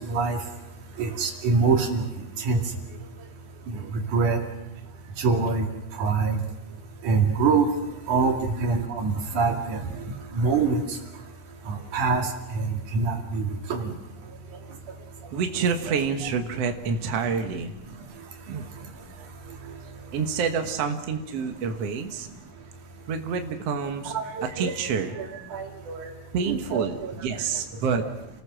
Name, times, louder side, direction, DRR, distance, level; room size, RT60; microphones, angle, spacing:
voice 1, 0.1-0.4 1.0-2.0 2.4-2.6 3.7-4.4 5.2-5.7 6.0-6.4 7.0-7.7 8.1-10.8 11.7-12.3 12.6-13.9 15.9-16.3 24.1-24.3 24.6-24.7 25.2-25.3 25.5-26.1 26.5-27.1, right 4 dB, 85° right, 3 dB, 3.8 m, -25 dB
voice 2, 15.3-17.8 18.5-18.7 20.1-22.3 23.1-24.1 24.4-25.5 26.3-28.1, right 6 dB, 60° right, 5 dB, 2.3 m, -28 dB
29.0 x 20.0 x 6.3 m, 0.99 s
omnidirectional pair, 3.4 m